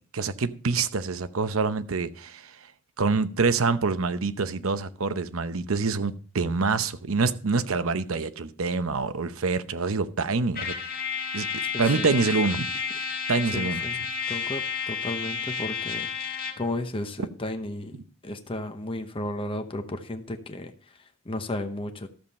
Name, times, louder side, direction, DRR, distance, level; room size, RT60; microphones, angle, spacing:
voice 1, 0.1-2.6 3.0-10.7 11.3-11.5 11.8-12.7 13.3-13.8, right 4 dB, 70° right, 0.8 m, -26 dB
Trumpet, 10.5-16.7, left 6 dB, 45° left, 1.6 m, -31 dB
voice 2, 11.7-12.2 13.4-14.0 14.3-22.1, left 1 dB, 25° left, 0.9 m, -34 dB
13.0 x 7.3 x 4.2 m
head